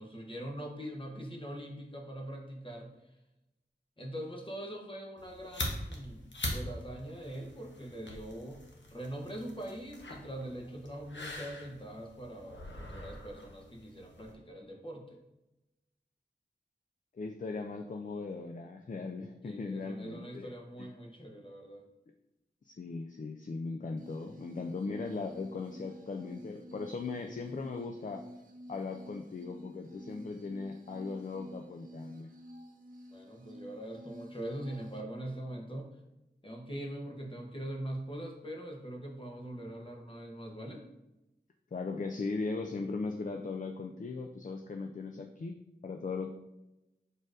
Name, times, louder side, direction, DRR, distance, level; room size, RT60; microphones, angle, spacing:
voice 1, 0.0-3.0 4.0-15.2 19.4-21.8 33.1-35.9 36.4-40.9, right 1 dB, 30° left, 1 dB, 0.9 m, -42 dB
sound 1, 5.2-14.3, left 1 dB, 85° left, 0.8 m, -43 dB
voice 2, 17.1-20.5 20.8-20.9 22.6-28.2 28.7-32.3 41.7-45.6 45.8-46.3, left 4 dB, 45° left, 4 dB, 0.4 m, -38 dB
sound 2, 24.0-35.0, equal, 50° right, 0.6 m, -50 dB
4.9 x 4.3 x 2.5 m, 0.93 s
wide cardioid pair, 50°, 19 cm